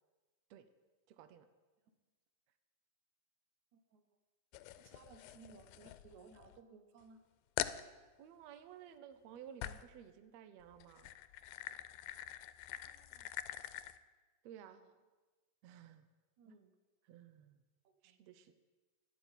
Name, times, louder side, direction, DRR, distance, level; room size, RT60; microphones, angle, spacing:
voice 1, 1.1-1.5 8.2-11.1 14.4-14.8 15.6-16.0 16.5-16.6 17.0-17.6 18.0-18.5, right 9 dB, 90° right, 10 dB, 1.5 m, -55 dB
voice 2, 3.7-4.0 4.8-7.2 12.7-13.3 14.7-14.9 16.4-16.7 17.8-18.2, right 5 dB, 60° right, 7 dB, 2.5 m, -61 dB
sound 1, 4.5-6.6 7.0-7.1 7.6-7.9 9.6-10.0 10.7-14.0, left 14 dB, 90° left, 2.4 m, -45 dB
12.5 x 8.6 x 9.7 m, 1.3 s
omnidirectional pair, 4.2 m